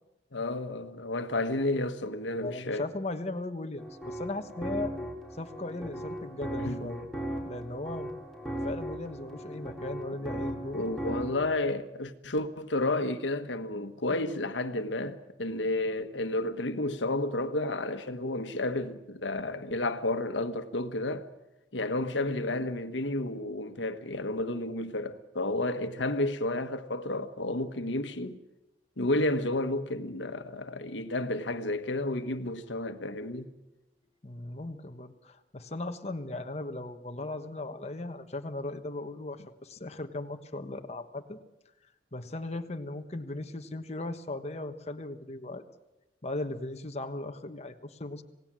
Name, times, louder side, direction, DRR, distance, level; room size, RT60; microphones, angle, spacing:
voice 1, 0.3-2.9 6.6-7.0 10.7-21.3 21.7-28.4 29.0-33.5, left 2 dB, 90° left, 1.4 m, -31 dB
voice 2, 2.4-4.9 5.3-7.1 7.5-8.1 8.6-10.8 25.9-26.0 34.2-41.4 42.1-45.6 46.2-48.2, left 2 dB, 35° left, 1.3 m, -37 dB
sound 1, 3.8-11.5, right 1 dB, ahead, 4.4 m, -37 dB
27.5 x 18.0 x 7.6 m
head